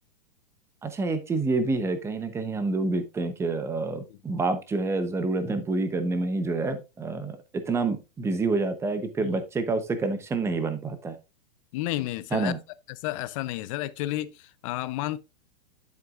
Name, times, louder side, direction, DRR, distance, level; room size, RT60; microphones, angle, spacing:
voice 1, 0.8-7.4 7.7-11.2 12.3-12.6, right 3 dB, 10° right, 0.8 m, -28 dB
voice 2, 11.7-12.5 13.0-15.2, left 16 dB, 35° left, 0.5 m, -31 dB
9.2 x 7.8 x 2.4 m
hypercardioid pair, 150°, 30 cm